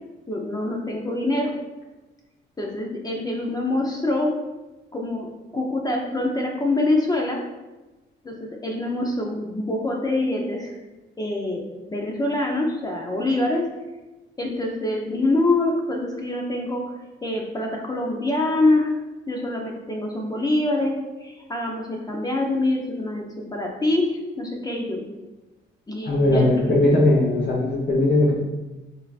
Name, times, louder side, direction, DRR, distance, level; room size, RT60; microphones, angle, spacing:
voice 1, 0.3-1.5 2.6-4.3 4.9-7.4 8.2-10.8 11.2-13.7 14.4-18.9 19.3-25.0 25.9-26.7, left 2 dB, 20° left, 0 dB, 0.6 m, -25 dB
voice 2, 26.0-28.4, left 1 dB, 50° left, -5 dB, 0.9 m, -19 dB
5.5 x 2.7 x 2.4 m, 1.1 s
cardioid pair, 90°, 20 cm